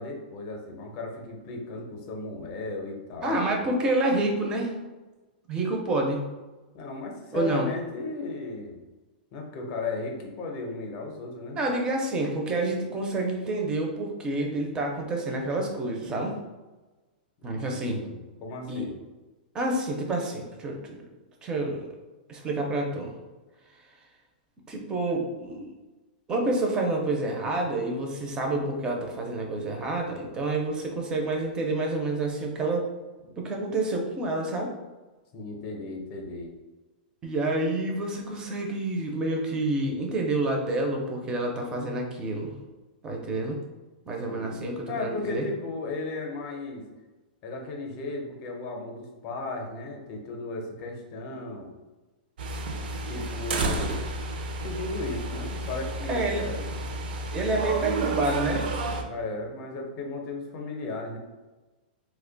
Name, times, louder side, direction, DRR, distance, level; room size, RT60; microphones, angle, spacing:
voice 1, 0.0-3.5 6.7-8.8 9.3-11.6 17.5-18.9 35.3-36.5 44.2-44.6 44.9-46.8 47.4-51.7 53.1-54.0 54.6-56.9 59.1-61.2, left 3 dB, 35° left, 2 dB, 0.6 m, -35 dB
voice 2, 3.2-4.7 5.5-6.2 7.3-7.7 11.5-16.3 17.4-18.0 18.7-18.9 19.5-21.0 21.4-21.9 22.3-23.1 24.7-25.7 26.3-32.9 33.4-34.7 37.2-42.5 43.0-43.6 44.1-45.4 56.1-56.4 57.3-58.7, right 2 dB, 15° right, 1 dB, 0.4 m, -28 dB
sound 1, 52.4-59.0, right 2 dB, 70° right, 0.4 m, -31 dB
2.8 x 2.1 x 3.8 m, 1.2 s
supercardioid pair, 165°, 5 cm